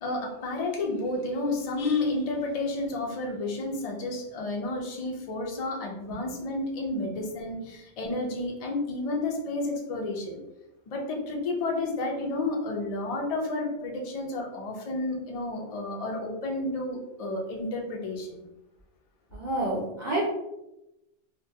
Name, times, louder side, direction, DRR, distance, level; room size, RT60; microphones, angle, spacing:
voice 1, 0.0-10.4 10.9-18.5, left 2 dB, 65° left, 0 dB, 0.3 m, -31 dB
voice 2, 19.3-20.2, right 2 dB, 55° right, -5 dB, 0.5 m, -28 dB
2.2 x 2.2 x 2.7 m, 0.91 s
omnidirectional pair, 1.3 m